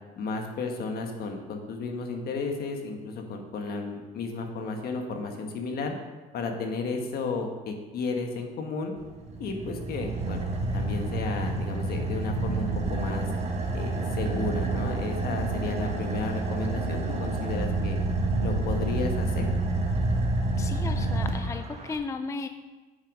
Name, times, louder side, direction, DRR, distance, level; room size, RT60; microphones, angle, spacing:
voice 1, 0.2-5.9 6.3-8.9 9.4-10.5 10.7-13.3 13.7-18.0 18.4-19.5, left 4 dB, 65° left, 3 dB, 1.4 m, -33 dB
Car / Idling, 9.0-22.0, right 2 dB, 40° right, 1.4 m, -28 dB
voice 2, 15.6-15.9 20.6-22.5, left 4 dB, 20° left, 8 dB, 0.4 m, -35 dB
8.1 x 6.3 x 5.3 m, 1.3 s
cardioid pair, 110°, 17 cm